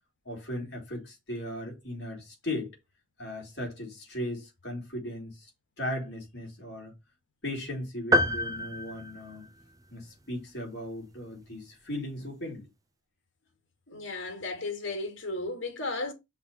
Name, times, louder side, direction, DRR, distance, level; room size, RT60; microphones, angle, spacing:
voice 1, 0.3-2.7 3.2-5.5 5.8-6.9 7.4-9.5 9.9-12.7, left 1 dB, 55° left, 3.6 m, -37 dB
sound 1, 8.1-9.9, equal, 15° right, 0.5 m, -28 dB
voice 2, 13.9-16.1, left 2 dB, 70° left, 2.3 m, -34 dB
5.9 x 4.2 x 5.5 m
head